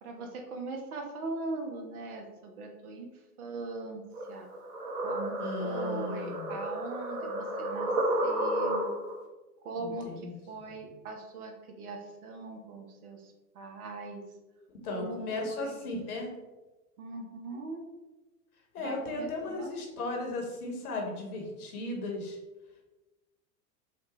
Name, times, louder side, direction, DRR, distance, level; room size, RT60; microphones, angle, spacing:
voice 1, 0.0-3.1 3.4-4.0 4.3-4.5 5.0-7.9 8.2-8.9 9.6-14.2 14.9-15.9 17.0-17.9 18.8-19.7, right 3 dB, 65° right, 3 dB, 1.1 m, -40 dB
sound 1, 4.1-9.2, right 1 dB, 40° right, 1.1 m, -32 dB
voice 2, 5.4-6.6 9.8-10.3 14.8-16.3 18.7-22.4, left 2 dB, 65° left, 1 dB, 1.4 m, -36 dB
6.4 x 2.3 x 3.1 m, 1.1 s
figure-of-eight pair, 95°, 47 cm